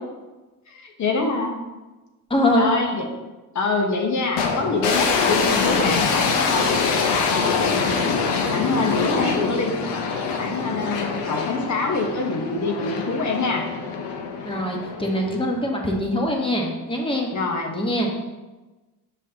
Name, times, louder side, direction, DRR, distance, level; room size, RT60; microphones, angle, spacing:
voice 1, 0.7-1.6 2.6-3.1 3.5-6.8 7.3-7.9 8.5-9.8 10.4-13.7 17.3-17.8, left 3 dB, 45° left, 2 dB, 1.1 m, -25 dB
voice 2, 2.3-2.7 14.4-17.3 17.7-18.1, left 1 dB, 15° left, 0 dB, 1.3 m, -23 dB
sound 1, 4.4-15.6, left 5 dB, 85° left, 0.9 m, -24 dB
6.2 x 5.4 x 2.9 m, 1.1 s
cardioid pair, 90°, 40 cm